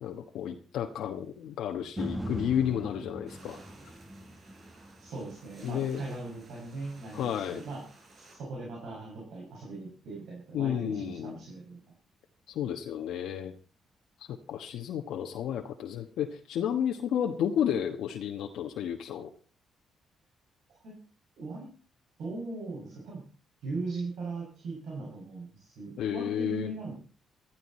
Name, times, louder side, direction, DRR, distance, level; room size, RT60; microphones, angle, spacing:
voice 1, 0.0-3.9 5.6-6.0 7.1-7.6 10.5-11.4 12.5-13.5 14.3-19.3 26.0-26.7, left 9 dB, 80° left, 4 dB, 1.2 m, -32 dB
sound 1, 2.0-10.1 10.6-10.7, equal, 10° right, 1.2 m, -43 dB
sound 2, 3.3-8.4, right 3 dB, 50° right, 6.3 m, -56 dB
voice 2, 5.0-7.8 8.1-11.8 20.8-20.9 21.4-21.7 22.2-23.2 23.6-26.9, right 3 dB, 75° right, -3 dB, 6.6 m, -39 dB
14.5 x 13.5 x 4.3 m, 0.39 s
cardioid pair, 90°, 0 cm